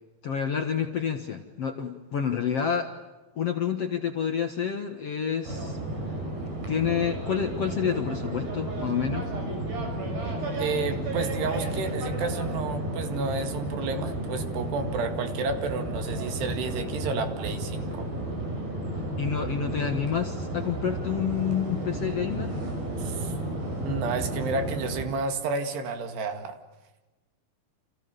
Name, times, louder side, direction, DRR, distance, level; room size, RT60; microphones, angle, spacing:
voice 1, 0.2-2.9 3.4-5.8 6.7-9.3 19.2-22.5, left 7 dB, 55° left, 5 dB, 1.7 m, -28 dB
sound 1, 5.4-25.1, right 1 dB, 60° right, 7.9 m, -32 dB
voice 2, 10.6-18.1 23.0-23.3 23.8-26.6, right 4 dB, 80° right, 7 dB, 4.3 m, -31 dB
29.5 x 27.5 x 6.9 m, 1.1 s
omnidirectional pair, 4.7 m